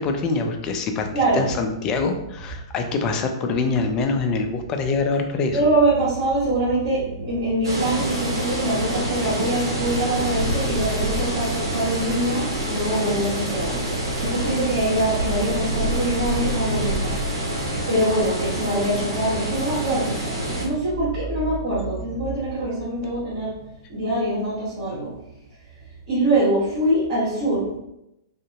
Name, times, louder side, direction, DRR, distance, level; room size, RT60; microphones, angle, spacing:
voice 1, 0.0-1.1 1.3-5.6, left 4 dB, 30° left, 5 dB, 0.4 m, -24 dB
voice 2, 1.1-1.5 5.5-23.6 23.9-25.1 26.1-27.8, right 1 dB, 40° right, -11 dB, 1.2 m, -24 dB
sound 1, 7.6-20.6, right 1 dB, 70° right, 0.7 m, -27 dB
2.8 x 2.6 x 2.5 m, 0.85 s
figure-of-eight pair, 105°, 2 cm